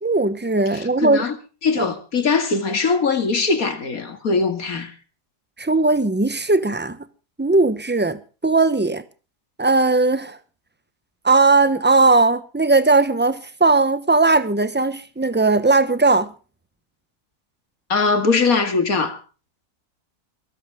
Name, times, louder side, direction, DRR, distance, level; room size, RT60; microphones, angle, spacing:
voice 1, 0.0-1.2 5.6-7.0 7.4-9.0 9.6-10.4 11.2-16.3, right 3 dB, 10° right, 0.5 m, -18 dB
voice 2, 0.7-1.3 1.6-4.9 17.9-19.2, left 4 dB, 60° left, 2.6 m, -21 dB
22.5 x 14.0 x 3.6 m
omnidirectional pair, 1.7 m